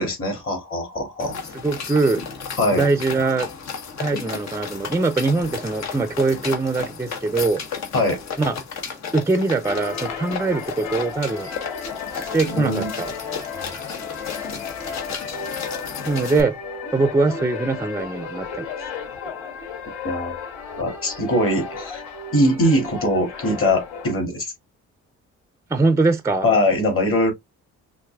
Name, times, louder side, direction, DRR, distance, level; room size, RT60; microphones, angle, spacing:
voice 1, 0.0-1.4 2.6-2.9 7.9-8.2 12.4-12.9 20.0-20.4 20.8-22.0 22.3-24.5 26.4-27.3, left 1 dB, 45° left, 2.4 m, -21 dB
sound 1, 1.2-16.4, left 6 dB, 65° left, 1.2 m, -33 dB
voice 2, 1.6-2.2 2.8-3.5 4.0-7.6 8.4-8.5 9.1-11.5 12.1-13.1 16.1-16.5 16.9-18.7 25.7-26.5, right 3 dB, 10° right, 0.5 m, -22 dB
sound 2, 9.6-24.1, left 6 dB, 80° left, 2.5 m, -34 dB
5.7 x 2.6 x 2.3 m
cardioid pair, 90°, 30 cm